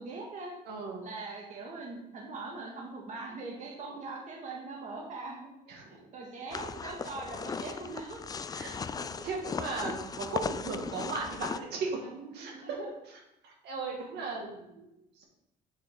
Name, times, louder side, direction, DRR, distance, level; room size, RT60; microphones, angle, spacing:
voice 1, 0.0-0.6 1.0-5.5 6.1-8.2 9.0-9.3 12.0-12.9, right 3 dB, 45° right, -1 dB, 1.7 m, -41 dB
voice 2, 0.7-1.1 5.7-6.1 8.5-8.8 9.0-12.0 12.3-12.8 13.1-14.9 15.2-15.3, right 4 dB, 75° right, -1 dB, 2.1 m, -37 dB
sound 1, 6.5-11.6, left 5 dB, 20° left, 0.4 m, -37 dB
6.9 x 6.5 x 3.9 m, 0.87 s
cardioid pair, 110°, 17 cm